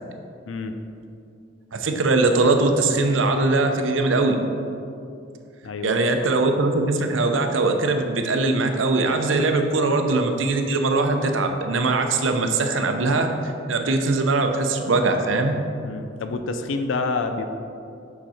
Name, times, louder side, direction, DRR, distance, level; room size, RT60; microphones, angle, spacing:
voice 1, 0.5-0.8 5.6-6.3 15.8-17.4, left 3 dB, 85° left, 7 dB, 0.5 m, -28 dB
voice 2, 1.7-4.4 5.8-13.3 13.7-15.5, right 3 dB, 85° right, 5 dB, 0.6 m, -21 dB
6.2 x 5.9 x 4.2 m, 2.6 s
head